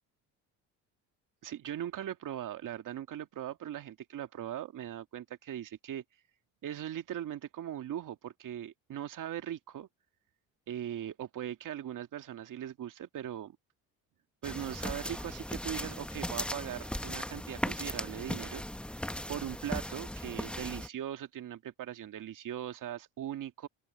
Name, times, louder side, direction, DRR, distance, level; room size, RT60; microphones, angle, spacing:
voice 1, 1.4-6.0 6.6-9.9 10.7-13.6 14.4-18.6 19.3-23.7, right 11 dB, 55° right, 2.0 m, -40 dB
sound 1, 14.4-20.9, left 1 dB, 5° left, 1.2 m, -38 dB
open air
supercardioid pair, 85°, 38 cm